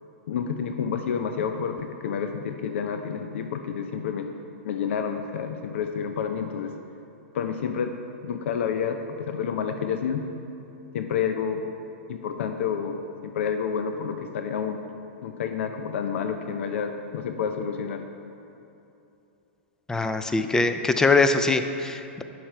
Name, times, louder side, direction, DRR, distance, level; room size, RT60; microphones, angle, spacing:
voice 1, 0.3-4.3 4.6-6.7 7.3-7.9 8.2-10.2 10.9-11.6 12.1-13.0 13.2-14.8 15.2-18.0, left 7 dB, 70° left, 6 dB, 0.6 m, -29 dB
voice 2, 19.9-22.2, left 3 dB, 10° left, 9 dB, 0.4 m, -22 dB
10.0 x 5.9 x 4.5 m, 2.8 s
hypercardioid pair, 130°, 7 cm